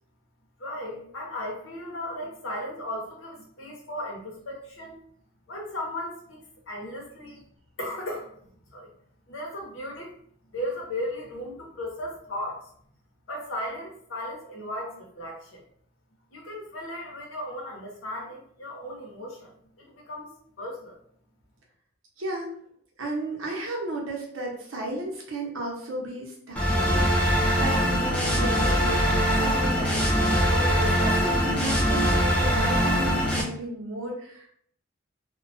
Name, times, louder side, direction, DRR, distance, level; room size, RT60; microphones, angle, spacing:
voice 1, 0.6-5.0 5.5-7.5 7.8-8.3 8.7-8.9 9.3-10.1 10.5-12.7 13.3-15.6 16.3-19.5 19.8-20.3 20.6-21.0, left 1 dB, 80° left, -1 dB, 0.8 m, -36 dB
voice 2, 22.2-22.5 23.0-34.5, right 1 dB, 90° right, -1 dB, 0.7 m, -34 dB
sound 1, 26.6-33.4, equal, 5° left, 0.4 m, -22 dB
2.2 x 2.1 x 2.6 m, 0.64 s
head